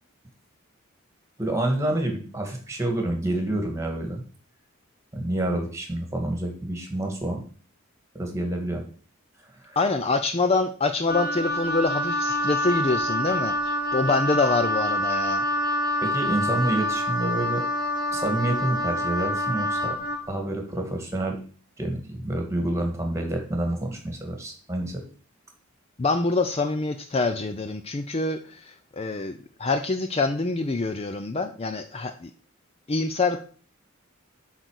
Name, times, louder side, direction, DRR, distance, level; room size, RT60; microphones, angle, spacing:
voice 1, 1.4-4.2 5.1-7.4 8.1-8.8 9.6-9.8 16.0-17.6 18.1-19.9 20.3-21.4 21.8-25.0, right 1 dB, 15° right, 3 dB, 1.8 m, -28 dB
voice 2, 9.8-15.5 26.0-32.3 32.9-33.4, left 3 dB, 30° left, 8 dB, 0.5 m, -25 dB
Wind instrument woodwind instrument, 11.1-20.2, left 1 dB, 45° left, 1.1 m, -26 dB
8.2 x 4.0 x 6.3 m, 0.41 s
head